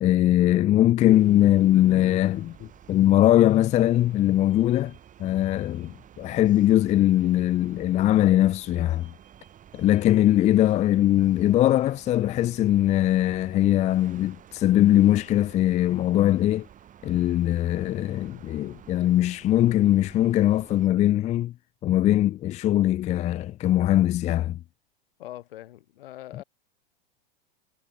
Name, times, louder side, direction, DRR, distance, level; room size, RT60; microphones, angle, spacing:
voice 1, 0.0-4.9 5.2-9.1 9.7-16.7 17.0-21.5 21.8-24.6, left 13 dB, 25° left, 0.5 m, -21 dB
sound 1, 1.1-20.9, right 10 dB, 25° right, 3.7 m, -51 dB
voice 2, 25.2-26.4, left 14 dB, 70° left, 6.5 m, -42 dB
hypercardioid pair, 115°, 29 cm